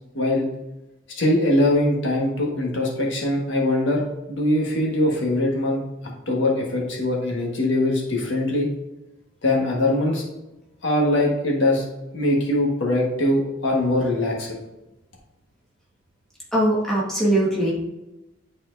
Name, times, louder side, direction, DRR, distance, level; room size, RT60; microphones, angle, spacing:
voice 1, 0.1-0.5 1.1-5.8 6.3-8.7 9.4-10.3 10.8-11.8 12.1-14.6, left 1 dB, 65° left, -1 dB, 1.4 m, -22 dB
voice 2, 16.5-17.7, right 1 dB, ahead, -6 dB, 1.6 m, -21 dB
10.0 x 4.3 x 2.6 m, 0.97 s
head